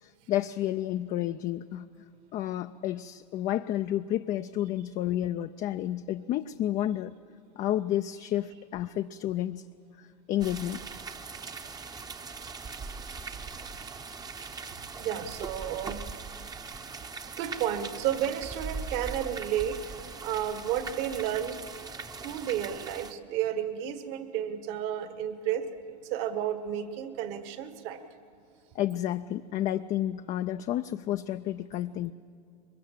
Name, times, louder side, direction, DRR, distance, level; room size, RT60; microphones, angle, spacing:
voice 1, 0.0-1.9 2.3-7.2 7.6-9.6 10.0-10.9 28.7-32.1, left 12 dB, 35° left, 9 dB, 0.5 m, -31 dB
sound 1, 10.4-23.1, right 4 dB, 20° right, 0.8 m, -40 dB
voice 2, 15.0-16.0 17.4-21.6 22.2-28.0, right 10 dB, 55° right, 10 dB, 1.6 m, -32 dB
22.5 x 21.5 x 7.5 m, 2.4 s
hypercardioid pair, 105°, 21 cm